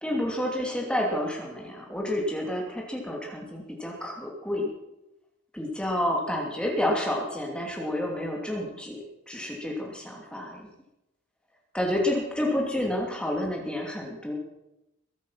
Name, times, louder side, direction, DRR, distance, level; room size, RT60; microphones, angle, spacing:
voice 1, 0.0-4.7 5.5-10.7 11.7-14.3, left 1 dB, 5° left, -1 dB, 2.8 m, -29 dB
22.0 x 9.3 x 5.9 m, 0.89 s
head